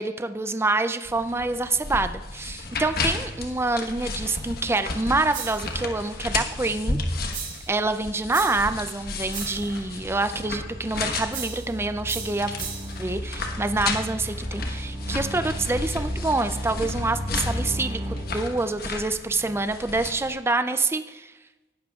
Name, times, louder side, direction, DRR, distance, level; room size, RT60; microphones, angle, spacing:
voice 1, 0.0-7.0 7.4-12.5 13.0-21.3, right 2 dB, 15° right, 9 dB, 0.4 m, -26 dB
sound 1, 1.0-20.3, left 3 dB, 55° left, 1.3 m, -33 dB
sound 2, 5.3-5.8 7.3-7.8 8.3-8.8 9.3-9.7 11.3-11.7 12.1-13.0, right 7 dB, 45° right, 2.6 m, -36 dB
sound 3, 8.9-18.2, equal, 30° right, 4.6 m, -35 dB
18.5 x 11.0 x 2.4 m, 1.2 s
head